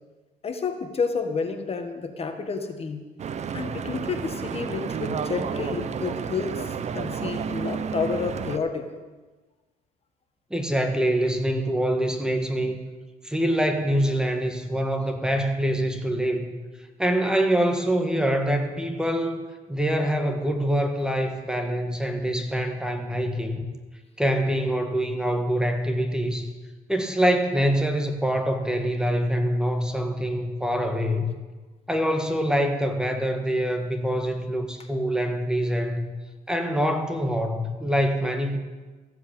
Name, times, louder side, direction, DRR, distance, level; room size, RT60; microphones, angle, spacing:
voice 1, 0.4-3.0 3.5-8.9, left 5 dB, 35° left, 6 dB, 1.5 m, -30 dB
Stream / Boat Water vehicle, 3.2-8.6, right 7 dB, 40° right, 0.8 m, -31 dB
voice 2, 10.5-12.8 13.2-16.5 17.0-19.4 19.7-23.7 24.2-26.5 26.9-31.3 31.9-36.0 36.5-38.6, equal, 5° right, 5 dB, 1.5 m, -25 dB
15.0 x 7.9 x 8.8 m, 1.3 s
cardioid pair, 110°, 17 cm